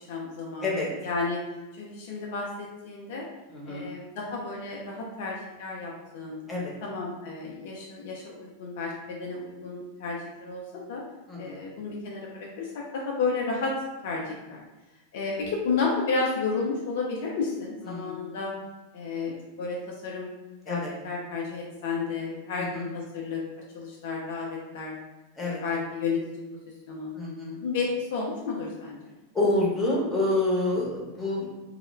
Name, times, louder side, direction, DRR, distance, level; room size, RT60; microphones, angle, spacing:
voice 1, 0.0-1.4 1.7-3.3 3.7-6.4 6.8-11.0 11.4-13.7 14.0-14.6 15.1-18.5 18.9-20.3 20.7-23.4 23.7-25.0 25.4-26.2 26.9-27.1 27.6-29.0, left 4 dB, 55° left, -2 dB, 0.4 m, -32 dB
voice 2, 3.5-3.9 6.5-6.7 11.3-11.6 17.9-18.3 20.7-20.9 22.6-22.9 25.4-25.6 27.2-27.6 29.3-31.5, left 2 dB, 10° left, -5 dB, 0.8 m, -28 dB
2.1 x 2.0 x 3.1 m, 1.1 s
figure-of-eight pair, 90°, 0 cm